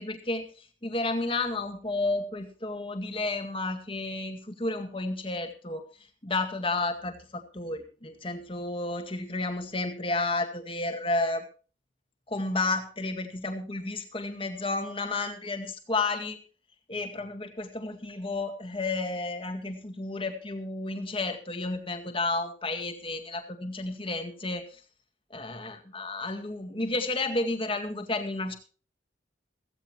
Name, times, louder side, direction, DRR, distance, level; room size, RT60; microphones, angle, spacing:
voice 1, 0.0-5.8 6.2-11.4 12.3-16.4 16.9-24.8 25.3-28.6, left 2 dB, 30° left, 6 dB, 2.0 m, -32 dB
16.0 x 16.0 x 3.0 m, 0.38 s
head